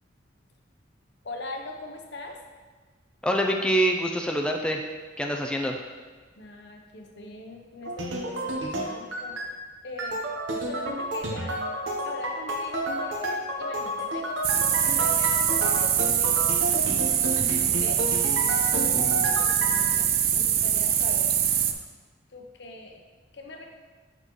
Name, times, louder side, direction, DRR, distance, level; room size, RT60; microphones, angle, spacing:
voice 1, 1.2-2.4 6.4-9.5 9.8-10.3 10.6-11.6 12.0-16.8 17.1-18.1 18.4-21.7 22.3-23.0 23.3-23.7, left 2 dB, 60° left, 2 dB, 0.8 m, -41 dB
voice 2, 3.2-4.8 5.2-5.8 18.9-19.3, right 1 dB, 5° left, 1 dB, 0.4 m, -26 dB
sound 1, 7.8-9.5 10.0-19.8, right 1 dB, 80° right, 0.9 m, -31 dB
sound 2, 14.4-21.7, right 9 dB, 55° right, 0.5 m, -23 dB
7.8 x 5.8 x 3.1 m, 1.4 s
head